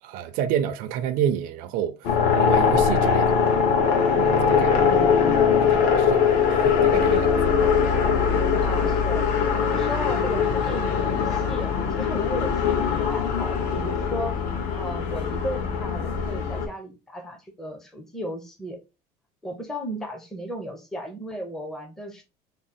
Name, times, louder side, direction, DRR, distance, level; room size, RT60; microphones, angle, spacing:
voice 1, 0.0-3.4 4.2-4.9 5.7-7.4 8.1-8.2, right 9 dB, 70° right, 0.4 m, -29 dB
sound 1, 2.0-16.7, left 6 dB, 65° left, 0.9 m, -21 dB
voice 2, 4.8-5.5 8.6-9.3 9.7-14.4 14.7-18.8 19.4-22.2, equal, 5° left, 0.5 m, -35 dB
3.6 x 2.0 x 4.0 m
cardioid pair, 180°, 15 cm